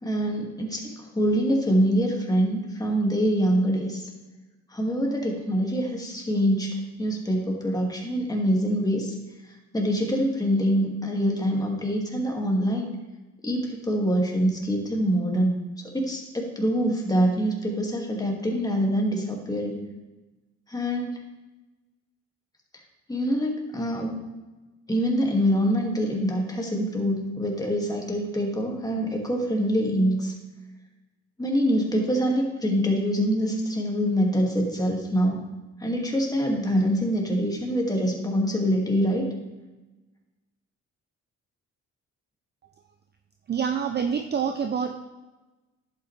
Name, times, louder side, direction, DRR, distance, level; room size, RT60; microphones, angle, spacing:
voice 1, 0.0-4.1 4.7-9.1 9.7-12.9 13.4-15.5 15.9-19.8 20.7-21.2 23.1-24.2 24.9-30.3 31.4-35.4 35.8-39.3, equal, 10° left, -1 dB, 2.1 m, -25 dB
voice 2, 43.5-45.0, right 7 dB, 35° right, 6 dB, 0.6 m, -26 dB
11.0 x 8.4 x 3.3 m, 1.1 s
cardioid pair, 90°, 30 cm